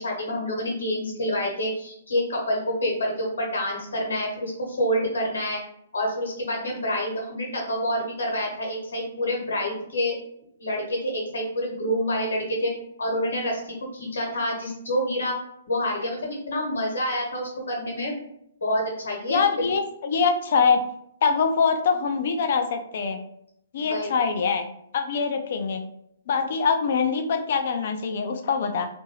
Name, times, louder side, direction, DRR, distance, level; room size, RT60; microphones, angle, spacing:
voice 1, 0.0-5.6 5.9-10.2 10.6-12.7 13.0-15.4 15.7-18.1 18.6-19.7 23.9-24.1, equal, 65° left, -1 dB, 1.1 m, -27 dB
voice 2, 19.3-20.8 21.2-23.2 23.7-24.7 24.9-25.8 26.3-28.9, left 5 dB, 50° left, 6 dB, 0.4 m, -23 dB
2.6 x 2.6 x 2.9 m, 0.73 s
figure-of-eight pair, 120°, 0 cm